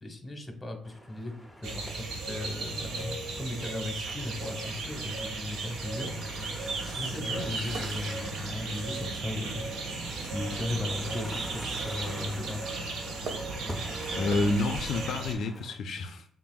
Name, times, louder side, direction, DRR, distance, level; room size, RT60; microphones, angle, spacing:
voice 1, 0.0-6.1 6.8-9.6 10.2-12.6, left 2 dB, 20° left, 4 dB, 1.0 m, -37 dB
sound 1, 0.8-15.8, equal, ahead, 0.6 m, -45 dB
sound 2, 1.6-15.3, right 3 dB, 80° right, 0.8 m, -36 dB
sound 3, 6.0-15.2, right 2 dB, 65° right, 1.1 m, -47 dB
voice 2, 14.1-16.3, left 2 dB, 65° left, 6 dB, 0.4 m, -29 dB
5.5 x 2.5 x 2.3 m, 0.67 s
cardioid pair, 90°, 0 cm